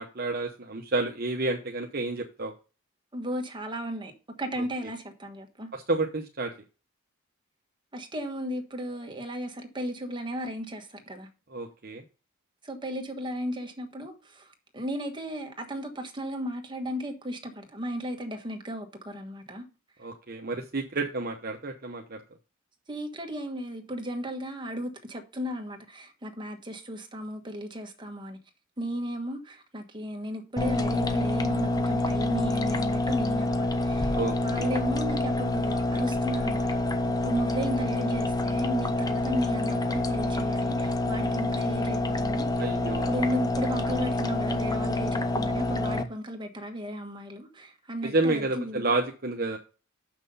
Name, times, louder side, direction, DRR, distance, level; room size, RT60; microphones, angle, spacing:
voice 1, 0.0-2.5 4.6-4.7 5.7-6.5 11.5-12.0 20.0-22.2 34.1-34.7 42.6-43.1 48.0-49.6, right 2 dB, 45° right, 0.8 m, -30 dB
voice 2, 3.1-4.1 4.4-5.7 7.9-11.3 12.6-19.6 22.9-28.4 28.8-36.9 37.2-42.8 43.1-48.9, equal, 20° right, 1.4 m, -35 dB
sound 1, 30.6-46.0, left 2 dB, 15° left, 0.6 m, -27 dB
6.7 x 6.1 x 5.4 m
head